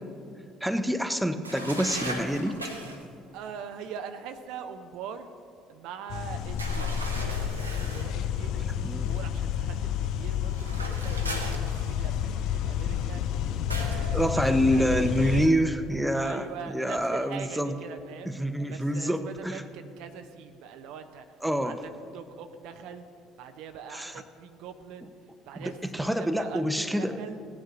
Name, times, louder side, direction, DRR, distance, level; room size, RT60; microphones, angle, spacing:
voice 1, 0.6-2.6 8.8-9.1 14.1-17.8 18.3-19.6 21.4-21.8 23.9-24.1 25.6-27.2, equal, 5° right, 8 dB, 0.8 m, -27 dB
sound 1, 1.4-3.1 6.6-8.1 10.5-12.2 13.7-14.1, right 1 dB, 90° right, 0.8 m, -38 dB
voice 2, 3.3-5.3 5.7-7.0 7.4-13.2 13.7-15.6 16.1-18.3 18.7-21.3 21.6-23.0 23.4-27.4, right 7 dB, 60° right, 8 dB, 0.6 m, -42 dB
sound 2, 6.1-15.5, left 9 dB, 60° left, 0.5 m, -30 dB
17.0 x 9.1 x 3.9 m, 2.4 s
figure-of-eight pair, 55°, 0 cm